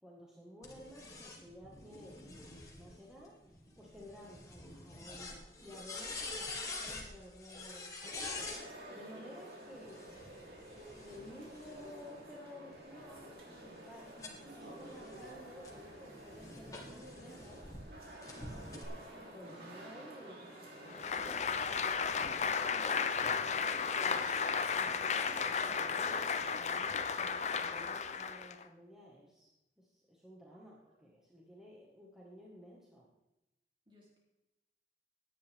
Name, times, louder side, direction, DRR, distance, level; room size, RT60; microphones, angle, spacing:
voice 1, 0.0-10.1 10.3-18.1 18.4-22.0 22.7-29.5 29.8-33.1, equal, 5° right, -5 dB, 1.8 m, -54 dB
sound 1, 0.6-8.6 9.8-12.1 12.7-17.8 18.2-18.8, left 3 dB, 20° left, 2.0 m, -47 dB
sound 2, 8.0-26.6, right 1 dB, 55° right, 3.7 m, -51 dB
voice 2, 18.3-18.6 30.6-30.7 31.0-31.1 33.9-34.2, left 1 dB, 25° right, -3 dB, 3.7 m, -62 dB
Applause, 20.9-28.6, left 6 dB, 40° left, 0.6 m, -34 dB
16.5 x 10.5 x 3.7 m, 0.94 s
head